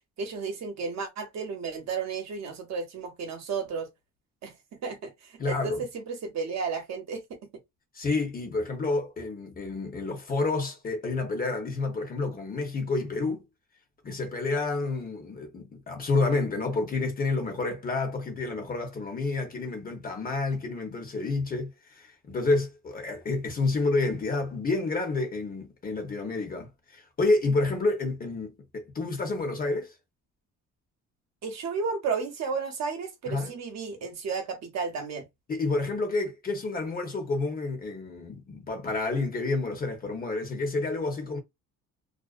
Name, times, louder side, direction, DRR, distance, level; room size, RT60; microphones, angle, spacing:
voice 1, 0.2-3.9 4.4-7.5 31.4-35.3, right 5 dB, 55° right, 0.8 m, -33 dB
voice 2, 5.4-5.8 7.9-13.4 14.0-29.9 33.3-33.5 35.5-41.4, left 3 dB, 25° left, 0.8 m, -29 dB
2.4 x 2.1 x 2.4 m
cardioid pair, 150°, 32 cm